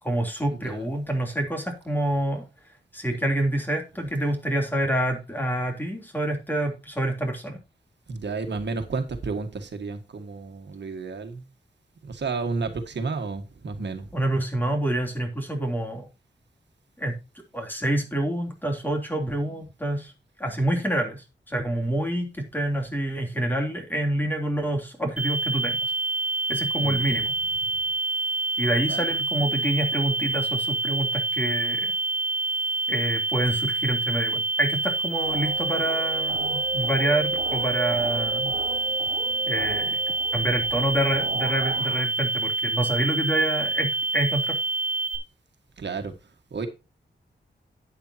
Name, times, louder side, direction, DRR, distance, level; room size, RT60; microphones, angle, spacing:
voice 1, 0.0-2.5 2.9-7.6 14.1-16.1 17.0-17.2 17.5-20.1 20.4-25.9 26.5-27.3 28.6-31.9 32.9-38.6 39.5-40.0 40.3-44.6, right 1 dB, 10° left, 3.2 m, -27 dB
voice 2, 8.1-11.4 12.0-14.1 26.8-27.3 28.9-29.1 45.8-46.1 46.5-46.7, right 4 dB, 70° right, 1.7 m, -32 dB
sound 1, 25.2-45.2, right 3 dB, 5° right, 2.4 m, -27 dB
sound 2, 35.2-42.0, right 3 dB, 50° right, 2.7 m, -36 dB
11.5 x 9.4 x 2.9 m
wide cardioid pair, 125°, 19 cm